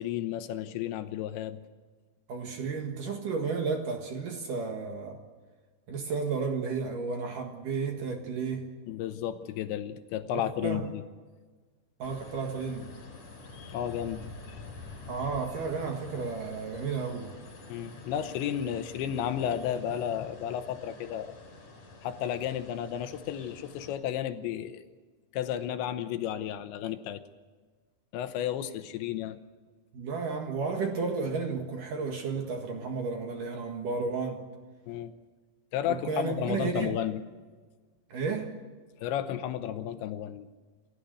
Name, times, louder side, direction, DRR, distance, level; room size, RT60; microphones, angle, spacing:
voice 1, 0.0-1.6 8.9-11.0 13.7-14.6 17.7-21.4 22.0-24.8 25.3-27.2 28.1-29.4 34.9-35.1 35.7-37.2 39.0-40.5, left 10 dB, 80° left, 9 dB, 3.1 m, -33 dB
voice 2, 2.3-5.2 5.9-8.7 10.3-10.8 12.0-12.9 15.1-17.3 29.9-34.4 35.9-37.0 38.1-38.5, right 4 dB, 55° right, 3 dB, 2.7 m, -32 dB
sound 1, 12.0-23.9, left 3 dB, 40° left, 5.4 m, -47 dB
29.5 x 13.0 x 8.1 m, 1.4 s
omnidirectional pair, 5.4 m